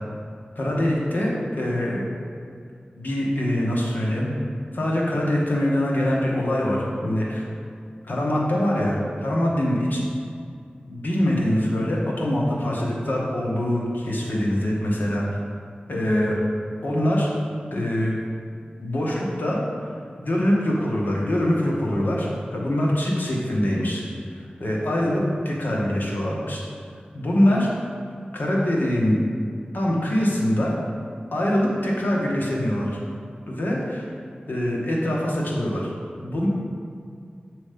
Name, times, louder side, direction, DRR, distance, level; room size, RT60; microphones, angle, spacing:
voice 1, 0.5-2.0 3.0-4.3 4.7-7.4 8.0-10.1 10.9-15.2 15.9-16.4 16.8-17.3 17.7-18.2 18.8-19.6 20.2-24.0 24.3-26.6 27.1-27.7 28.3-29.2 29.7-30.8 31.3-32.9 33.5-34.1 34.5-35.9 36.2-36.5, left 1 dB, 70° left, -3 dB, 1.2 m, -23 dB
7.5 x 3.1 x 5.1 m, 2.3 s
wide cardioid pair, 80°, 3 cm